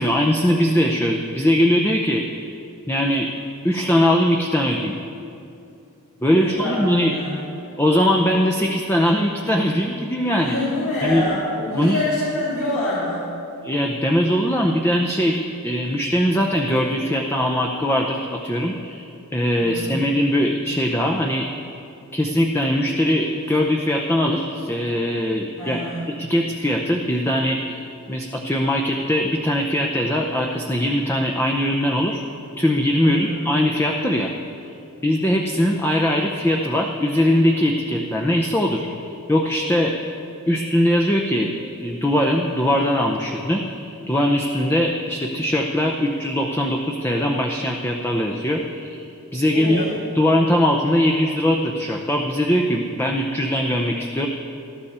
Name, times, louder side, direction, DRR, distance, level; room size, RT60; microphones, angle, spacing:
voice 1, 0.0-2.2 2.9-3.3 3.6-5.0 6.2-7.1 7.8-10.5 11.0-11.2 11.8-12.0 13.6-21.7 22.1-25.8 26.1-27.8 28.1-32.2 32.6-34.3 35.0-40.0 40.5-41.5 41.8-49.9 50.1-54.3, equal, 10° left, 1 dB, 0.7 m, -21 dB
voice 2, 6.3-6.8 7.1-7.4 10.4-13.2 19.6-20.0 25.6-26.1 33.0-33.5 49.5-49.9, left 1 dB, 80° left, -9 dB, 4.5 m, -26 dB
19.5 x 13.0 x 4.3 m, 2.6 s
head